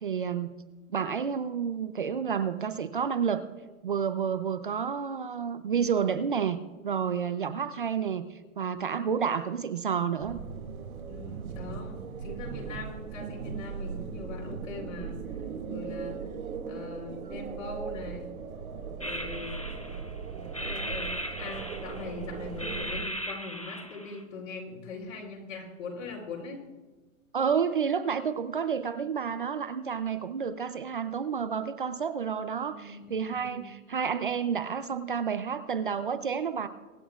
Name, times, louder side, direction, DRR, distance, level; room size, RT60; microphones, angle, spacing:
voice 1, 0.0-0.5 0.9-3.4 3.8-6.6 6.8-8.2 8.6-10.4 27.3-36.7, right 7 dB, 40° right, 11 dB, 0.5 m, -30 dB
sound 1, 10.2-23.1, right 6 dB, 90° right, 2.2 m, -38 dB
voice 2, 11.1-15.2 15.7-16.3 16.7-18.3 19.0-19.7 20.6-21.1 21.4-26.6 32.6-33.8, left 3 dB, 70° left, 0 dB, 4.1 m, -41 dB
sound 2, 19.0-20.1 20.5-22.2 22.6-24.2, equal, 30° left, 0.4 m, -38 dB
24.0 x 9.1 x 2.4 m, 1.2 s
hypercardioid pair, 180°, 41 cm